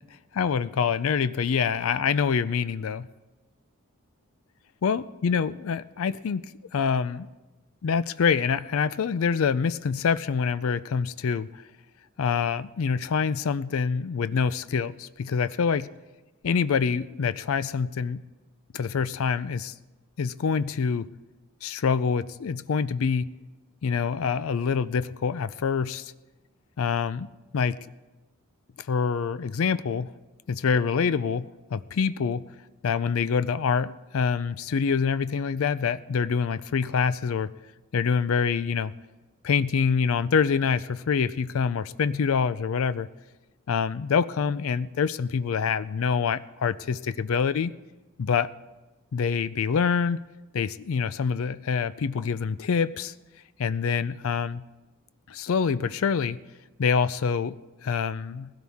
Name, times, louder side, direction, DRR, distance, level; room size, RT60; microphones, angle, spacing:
voice 1, 0.3-3.1 4.8-7.3 7.8-11.6 12.2-15.9 16.4-18.2 18.7-19.7 20.2-21.1 21.6-23.3 23.8-26.1 26.8-27.3 27.5-27.8 28.8-30.1 30.5-32.4 32.8-37.5 37.9-38.9 39.4-43.1 43.7-47.7 48.2-48.5 49.1-50.2 50.5-53.1 53.6-54.6 55.3-56.4 56.8-58.5, left 6 dB, 65° left, 15 dB, 0.4 m, -26 dB
20.0 x 16.5 x 3.6 m, 1.2 s
head